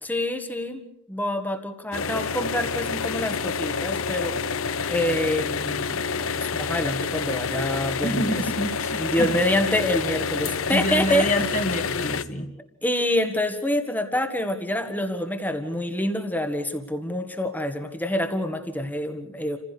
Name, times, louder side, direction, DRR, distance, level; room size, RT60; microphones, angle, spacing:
voice 1, 0.0-4.4 4.9-8.4 9.0-11.5 12.8-19.6, left 1 dB, 10° left, 7 dB, 1.7 m, -27 dB
sound 1, 1.9-12.2, left 5 dB, 80° left, 0.8 m, -28 dB
voice 2, 8.0-9.3 10.7-12.5, left 1 dB, 35° left, 3 dB, 2.1 m, -27 dB
28.5 x 16.0 x 6.8 m, 0.85 s
head